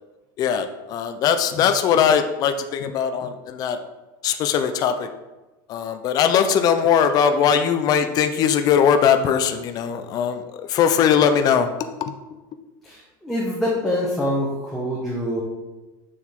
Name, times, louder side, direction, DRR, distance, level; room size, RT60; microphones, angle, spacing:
voice 1, 0.4-3.8 4.2-5.1 5.7-11.7 12.0-12.1, left 8 dB, 35° left, 8 dB, 0.6 m, -20 dB
voice 2, 12.8-15.4, left 1 dB, ahead, -5 dB, 1.3 m, -25 dB
7.3 x 6.3 x 3.7 m, 1.1 s
supercardioid pair, 145°, 11 cm